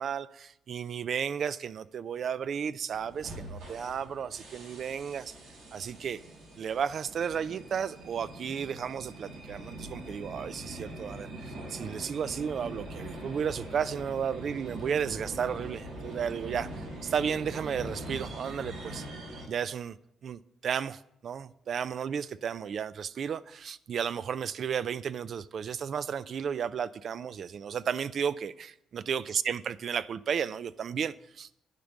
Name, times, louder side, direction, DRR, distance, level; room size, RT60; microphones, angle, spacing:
voice 1, 0.0-5.3 5.7-6.2 6.6-19.1 19.5-20.0 20.2-31.6, right 7 dB, 55° right, 0.3 m, -33 dB
sound 1, 2.9-19.5, right 1 dB, 90° right, 3.2 m, -43 dB
10.5 x 5.2 x 7.1 m
cardioid pair, 90°, 0 cm